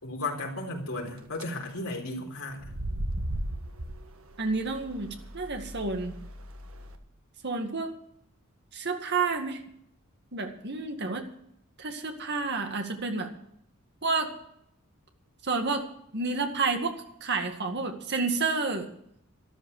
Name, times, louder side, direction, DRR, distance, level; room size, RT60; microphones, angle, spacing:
voice 1, 0.0-2.6, left 2 dB, 80° left, 0 dB, 4.1 m, -34 dB
sound 1, 1.1-1.4 2.5-7.0, right 1 dB, 70° right, 1.5 m, -37 dB
voice 2, 4.4-5.1 5.3-6.2 7.4-8.0 8.7-9.6 10.3-11.2 11.8-13.3 14.0-14.3 15.4-15.9 16.1-18.9, right 4 dB, 50° right, 5 dB, 2.0 m, -30 dB
13.0 x 12.0 x 6.6 m, 0.71 s
head